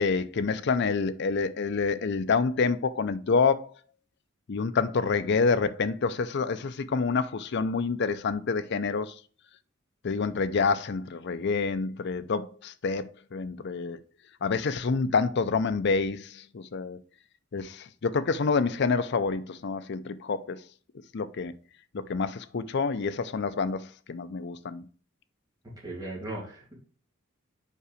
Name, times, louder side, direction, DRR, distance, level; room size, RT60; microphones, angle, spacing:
voice 1, 0.0-3.7 4.5-9.1 10.0-14.0 14.4-16.3 16.5-17.0 17.5-20.6 21.1-21.5 21.9-24.8, left 4 dB, 55° left, 0.5 m, -27 dB
voice 2, 25.8-26.7, right 2 dB, 20° right, 2.5 m, -37 dB
5.4 x 5.0 x 4.9 m
head